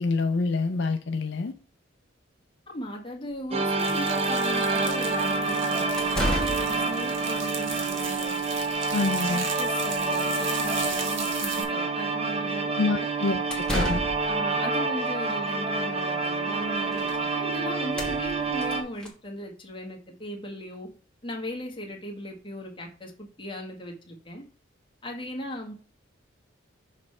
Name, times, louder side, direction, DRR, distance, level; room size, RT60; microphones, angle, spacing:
voice 1, 0.0-1.5 8.9-9.5 12.8-14.0, left 3 dB, 60° left, 0.5 m, -27 dB
voice 2, 2.7-8.4 8.9-13.1 14.2-17.1 17.3-20.9 21.2-24.4 25.0-25.7, equal, 25° left, 1.4 m, -38 dB
sound 1, 3.4-3.5 5.3-5.4 6.0-6.8 13.3-14.4 16.2-16.3 16.6-17.2 17.5-17.6 17.8-19.1, left 1 dB, 5° left, 1.2 m, -32 dB
sound 2, 3.5-18.8, right 3 dB, 30° right, 0.7 m, -27 dB
sound 3, 3.8-11.6, right 5 dB, 70° right, 1.5 m, -38 dB
6.5 x 3.2 x 4.8 m
head